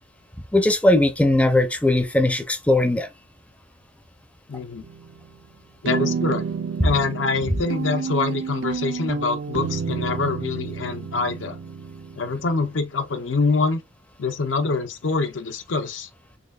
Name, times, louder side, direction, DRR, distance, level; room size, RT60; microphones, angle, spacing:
voice 1, 0.5-3.1, left 1 dB, 5° left, 0.4 m, -19 dB
voice 2, 4.5-4.9 5.8-6.5 6.8-11.6 12.2-13.8 14.2-16.1, left 4 dB, 85° left, 0.7 m, -25 dB
sound 1, 4.8-5.4 5.9-12.8, right 6 dB, 80° right, 0.4 m, -30 dB
3.9 x 3.3 x 2.3 m
head